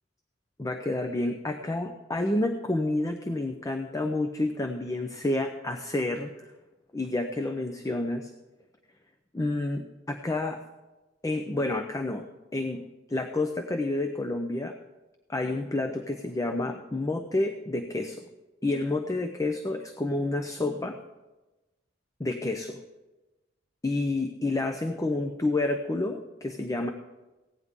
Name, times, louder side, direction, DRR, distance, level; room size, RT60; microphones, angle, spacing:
voice 1, 0.6-6.3 6.9-8.3 9.3-10.6 11.2-12.3 12.5-12.8 13.1-14.8 15.3-18.2 18.6-21.0 22.2-22.8 23.8-26.9, left 2 dB, 20° left, 6 dB, 0.5 m, -29 dB
16.0 x 9.6 x 3.7 m, 1.1 s
head